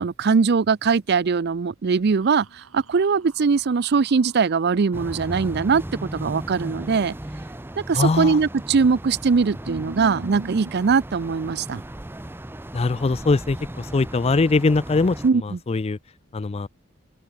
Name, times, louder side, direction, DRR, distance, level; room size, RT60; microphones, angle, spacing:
voice 1, 0.0-7.1 7.8-11.8 15.2-15.6, right 5 dB, 50° right, 0.5 m, -21 dB
sound 1, 2.2-5.6 8.3-8.8 9.1-9.2 9.7-10.7, right 1 dB, 75° right, 2.4 m, -42 dB
sound 2, 4.9-15.3, right 1 dB, 10° right, 0.7 m, -36 dB
voice 2, 7.9-8.4 12.7-16.0 16.3-16.7, left 3 dB, 30° left, 0.4 m, -22 dB
open air
head